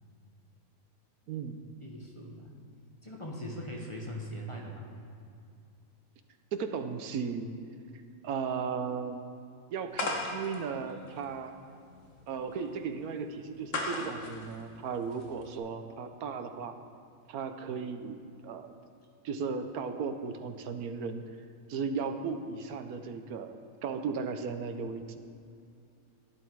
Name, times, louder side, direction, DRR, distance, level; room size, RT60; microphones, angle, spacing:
voice 1, 1.3-1.6 6.5-7.5 8.2-9.4 9.7-11.6 12.3-16.8 17.3-18.7 19.2-21.2 21.7-25.2, right 5 dB, 80° right, 7 dB, 1.3 m, -36 dB
voice 2, 1.8-2.5 3.0-4.9, equal, 20° left, -1 dB, 1.2 m, -40 dB
sound 1, 9.9-15.6, left 2 dB, 60° left, 1.5 m, -38 dB
11.5 x 11.0 x 4.7 m, 2.5 s
omnidirectional pair, 1.5 m